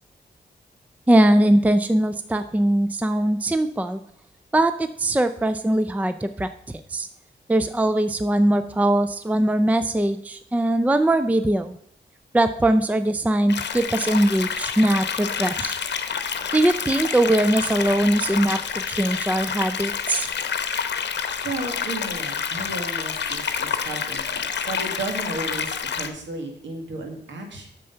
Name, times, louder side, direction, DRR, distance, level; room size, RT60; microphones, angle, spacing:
voice 1, 1.1-4.0 4.5-6.5 6.9-7.1 7.5-11.8 12.3-15.8 16.5-20.3, right 1 dB, 10° right, 11 dB, 0.5 m, -21 dB
sound 1, 13.5-26.1, left 7 dB, 70° left, 0.8 m, -28 dB
voice 2, 21.4-27.7, right 2 dB, 90° right, 3 dB, 1.8 m, -33 dB
7.6 x 6.7 x 5.6 m, 0.69 s
cardioid pair, 75°, 18 cm